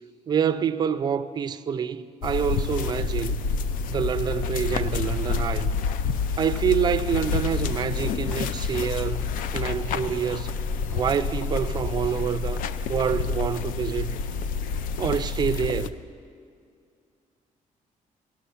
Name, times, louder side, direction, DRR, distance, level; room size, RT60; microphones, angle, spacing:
voice 1, 0.3-3.4 3.9-5.7 6.4-9.3 9.5-10.5 10.9-12.6 12.9-14.2 15.0-15.9, right 7 dB, 30° right, 0.3 m, -27 dB
sound 1, 2.2-15.9, left 5 dB, 90° left, 0.4 m, -28 dB
sound 2, 2.9-6.2 6.5-8.0 8.3-12.4, equal, 15° left, 1.3 m, -44 dB
17.0 x 6.1 x 5.6 m
cardioid pair, 155°, 14 cm